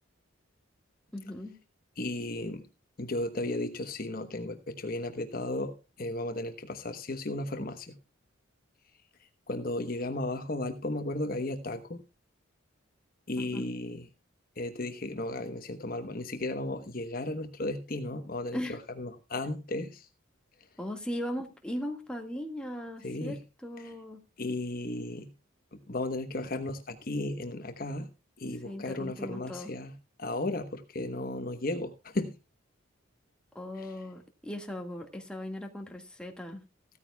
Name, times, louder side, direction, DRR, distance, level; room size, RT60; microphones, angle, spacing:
voice 1, 1.1-1.6 13.4-13.7 18.5-18.8 20.8-24.2 28.5-29.7 33.5-36.6, left 1 dB, 5° left, 2 dB, 1.7 m, -38 dB
voice 2, 2.0-2.6 3.0-8.0 9.5-12.0 13.3-14.1 14.6-20.1 23.0-23.4 24.4-25.3 25.7-28.1 28.4-29.9 30.2-32.4 33.8-33.9, left 2 dB, 45° left, 7 dB, 1.1 m, -35 dB
16.0 x 13.5 x 2.3 m, 0.29 s
head